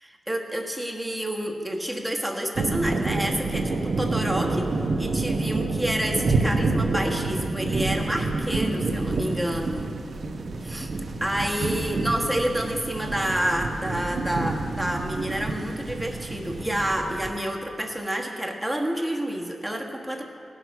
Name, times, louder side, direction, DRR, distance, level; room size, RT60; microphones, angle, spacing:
voice 1, 0.0-4.7 5.0-9.9 10.7-10.9 11.2-20.2, right 1 dB, 5° right, 0 dB, 1.3 m, -29 dB
sound 1, 2.6-17.3, right 3 dB, 60° right, 0.8 m, -28 dB
18.0 x 6.3 x 5.7 m, 2.5 s
wide cardioid pair, 95°, 0 cm